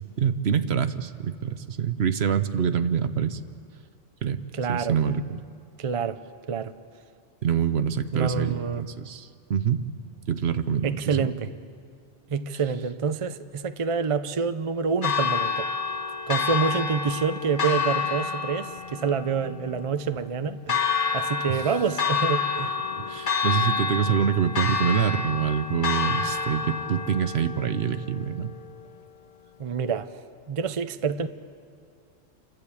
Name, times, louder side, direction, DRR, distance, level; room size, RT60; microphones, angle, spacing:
voice 1, 0.2-3.4 4.2-4.4 4.7-5.4 7.4-9.8 10.3-11.3 23.0-28.5, right 7 dB, 60° right, 11 dB, 1.0 m, -26 dB
voice 2, 4.5-5.0 5.8-6.2 6.5-6.7 8.1-8.8 10.8-11.5 12.3-15.7 16.3-20.9 21.1-22.7 29.6-30.1 30.5-31.3, right 6 dB, 40° right, 11 dB, 0.5 m, -27 dB
Church bell, 15.0-29.0, left 6 dB, 70° left, 1.7 m, -29 dB
29.5 x 12.0 x 8.4 m, 2.4 s
omnidirectional pair, 1.3 m